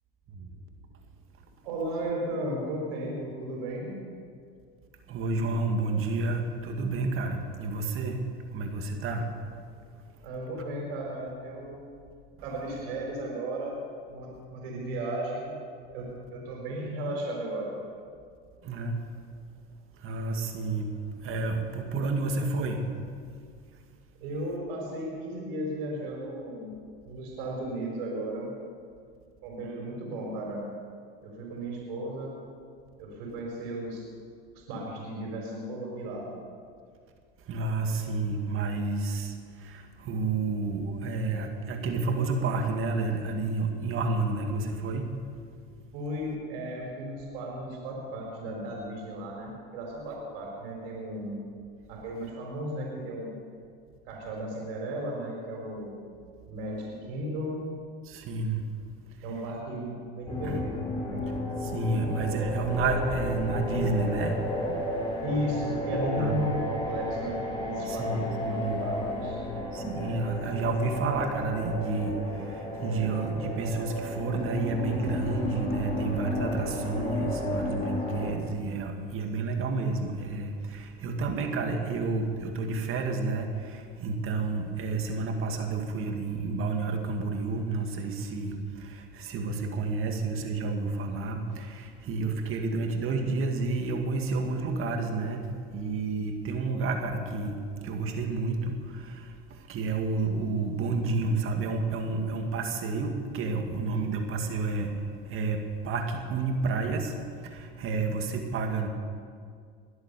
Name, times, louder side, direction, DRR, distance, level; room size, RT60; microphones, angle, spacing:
voice 1, 1.6-4.0 10.2-11.8 12.4-13.8 14.1-15.5 15.9-17.8 24.2-26.7 27.0-28.5 29.4-30.6 31.2-32.4 33.0-34.1 34.5-36.3 45.9-51.4 51.9-53.3 54.1-56.0 56.4-57.6 59.2-61.2 65.2-69.4, right 1 dB, 80° right, -2 dB, 4.4 m, -35 dB
voice 2, 5.1-8.2 8.5-9.3 18.6-19.0 20.0-22.9 37.5-45.3 58.0-58.7 60.4-60.6 61.6-64.4 66.2-66.6 67.9-68.8 69.7-105.0 105.3-107.2 107.4-108.9, right 3 dB, 45° right, 4 dB, 2.2 m, -30 dB
sound 1, 60.3-78.3, left 2 dB, 15° left, 4.6 m, -33 dB
22.0 x 8.1 x 6.9 m, 2.2 s
supercardioid pair, 100°, 29 cm